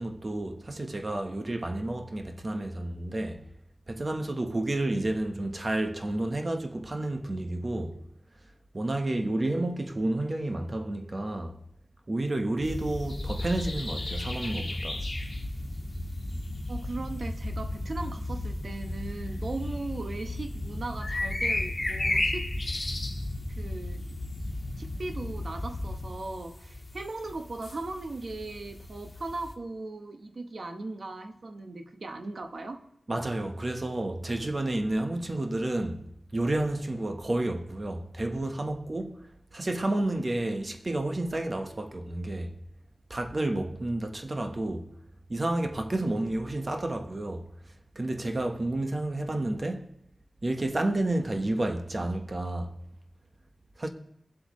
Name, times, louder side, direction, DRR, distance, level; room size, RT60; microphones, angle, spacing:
voice 1, 0.0-3.4 3.9-8.0 8.7-11.6 12.1-15.0 33.1-36.0 36.3-39.2 39.5-42.5 43.1-44.9 45.3-47.5 47.9-49.9 50.4-52.7 53.8-53.9, right 1 dB, 35° right, 1.1 m, -30 dB
sound 1, 12.6-29.5, left 1 dB, 25° left, 1.8 m, -34 dB
voice 2, 16.7-22.5 23.6-24.3 24.8-32.8, right 2 dB, 55° right, 1.1 m, -38 dB
21.5 x 8.0 x 3.2 m
wide cardioid pair, 95°, 0 cm